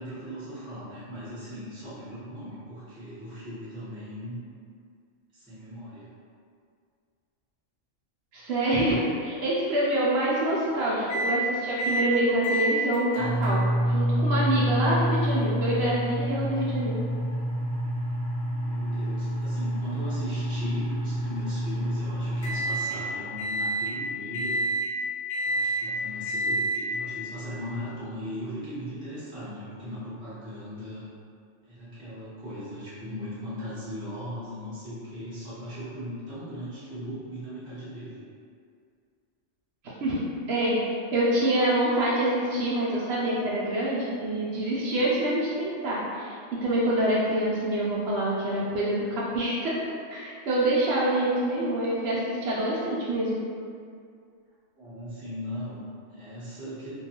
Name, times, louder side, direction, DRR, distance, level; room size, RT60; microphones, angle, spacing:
voice 1, 0.0-4.4 5.3-6.1 18.6-24.6 25.4-31.0 31.6-38.2 54.7-56.9, equal, 5° right, -13 dB, 0.6 m, -38 dB
voice 2, 8.3-13.6 13.9-17.0 40.0-40.2 40.5-46.3 46.6-49.8 50.1-53.4, right 1 dB, 65° right, -6 dB, 0.7 m, -26 dB
sound 1, 11.1-11.4 11.8-12.1 12.4-23.0 23.4-23.9 24.3-24.9 25.3-25.9 26.3-26.8, right 1 dB, 65° left, 0.9 m, -28 dB
2.5 x 2.3 x 2.8 m, 2.3 s
omnidirectional pair, 1.3 m